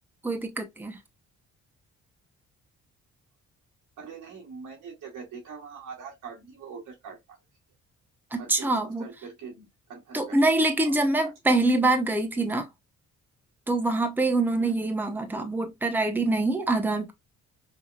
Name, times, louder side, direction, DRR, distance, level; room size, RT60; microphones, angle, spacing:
voice 1, 0.2-1.0 8.3-9.0 10.1-12.7 13.7-17.1, right 2 dB, 5° right, 0.8 m, -25 dB
voice 2, 4.0-7.4 8.4-10.5 10.8-11.0 11.2-11.3 12.4-12.6 14.6-14.9, right 5 dB, 85° right, 2.3 m, -43 dB
5.5 x 2.9 x 2.3 m
cardioid pair, 90°, 30 cm